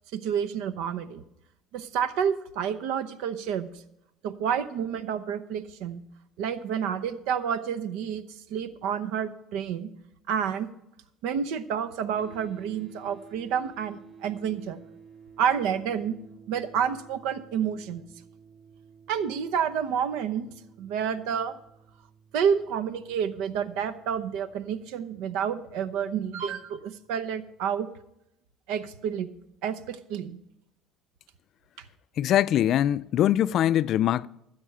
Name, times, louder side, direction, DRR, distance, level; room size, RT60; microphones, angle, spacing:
voice 1, 0.1-1.2 1.7-3.7 4.2-6.0 6.4-8.2 8.5-9.9 10.3-10.7 11.2-14.8 15.4-16.1 16.5-18.0 19.1-20.5 20.8-21.6 22.3-27.9 28.7-29.3 29.6-30.4, right 8 dB, 80° right, 0.8 m, -29 dB
sound 1, 12.1-27.4, right 6 dB, 25° right, 2.2 m, -54 dB
voice 2, 32.2-34.3, left 11 dB, 55° left, 0.3 m, -22 dB
12.5 x 8.0 x 5.6 m
supercardioid pair, 105°, 0 cm